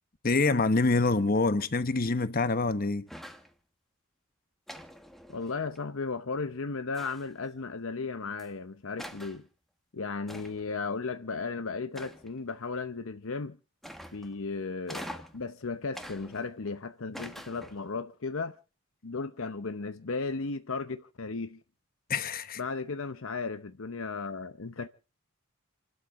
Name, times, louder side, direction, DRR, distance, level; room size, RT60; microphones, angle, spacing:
voice 1, 0.2-3.1 22.1-22.6, left 3 dB, 40° left, 1.0 m, -26 dB
sound 1, 3.1-3.5 4.7-5.8 6.9-7.5 8.4-8.5 9.0-9.4 10.3-10.7 11.9-12.5 13.8-14.4 14.9-15.4 15.9-16.7 17.1-17.9, equal, ahead, 1.2 m, -45 dB
voice 2, 5.3-9.5 9.9-13.6 14.1-18.6 19.0-21.6 22.6-24.9, left 4 dB, 65° left, 0.8 m, -35 dB
28.5 x 12.5 x 3.6 m
head